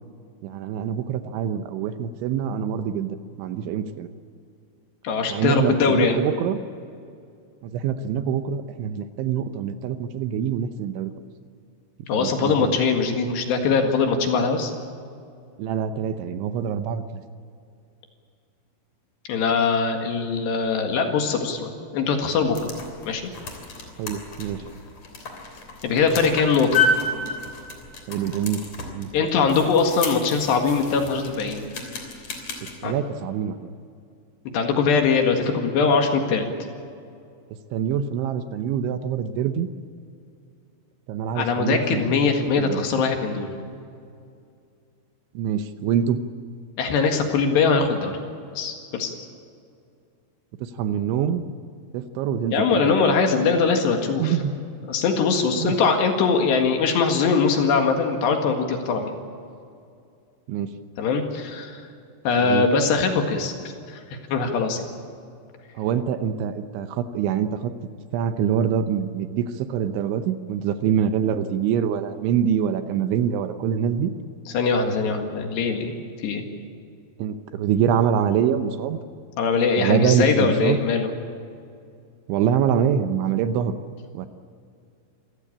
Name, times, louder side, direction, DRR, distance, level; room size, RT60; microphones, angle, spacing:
voice 1, 0.4-4.1 5.3-6.6 7.6-11.1 12.1-12.7 15.6-17.0 24.0-24.6 28.1-29.1 32.8-33.7 37.7-39.7 41.1-43.0 45.3-46.2 50.6-51.4 51.9-53.2 54.2-54.5 55.6-55.8 60.5-60.7 62.4-62.7 65.8-67.7 68.1-74.1 77.2-79.0 79.8-80.8 82.3-83.8 84.1-84.3, right 8 dB, 75° right, 9 dB, 3.1 m, -25 dB
voice 2, 5.0-6.2 12.1-14.7 19.3-22.7 23.1-23.3 25.8-26.8 29.1-31.7 32.8-32.9 34.5-36.5 41.4-43.5 46.8-48.1 48.5-49.1 52.5-54.4 54.9-59.2 61.0-61.8 62.3-63.5 63.9-64.0 64.3-64.8 74.5-75.9 76.2-76.4 79.4-81.1, left 5 dB, 65° left, 4 dB, 3.7 m, -22 dB
sound 1, 22.3-32.7, left 3 dB, 40° left, 3.8 m, -31 dB
27.0 x 16.0 x 8.7 m, 2.4 s
omnidirectional pair, 5.7 m